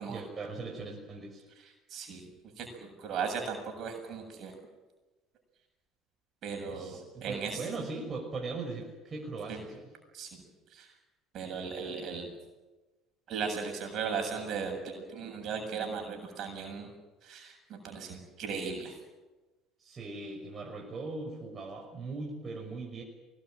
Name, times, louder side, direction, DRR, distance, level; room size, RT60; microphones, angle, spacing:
voice 1, 0.1-1.4 6.7-9.9 19.8-23.0, right 3 dB, 35° right, 0 dB, 6.0 m, -39 dB
voice 2, 1.9-2.3 2.6-4.5 6.4-7.6 9.5-9.6 10.1-10.3 10.7-10.9 11.3-12.3 13.3-16.9 17.2-18.9, right 5 dB, 55° right, 3 dB, 7.6 m, -37 dB
24.0 x 20.0 x 9.2 m, 1.2 s
hypercardioid pair, 70°, 0 cm